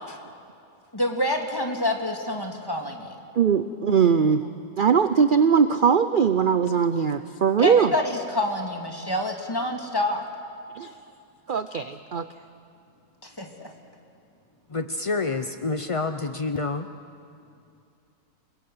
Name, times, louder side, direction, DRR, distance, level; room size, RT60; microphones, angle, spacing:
voice 1, 0.9-3.2 3.9-4.0 4.4-4.5 7.6-10.2 13.2-13.7, left 1 dB, 15° left, 2 dB, 2.3 m, -27 dB
voice 2, 3.4-4.4 4.8-7.9 10.7-10.9 11.5-12.3, right 6 dB, 55° right, 11 dB, 0.6 m, -20 dB
voice 3, 14.7-16.9, left 3 dB, 55° left, 9 dB, 0.3 m, -28 dB
28.0 x 21.5 x 7.9 m, 2.5 s
omnidirectional pair, 1.7 m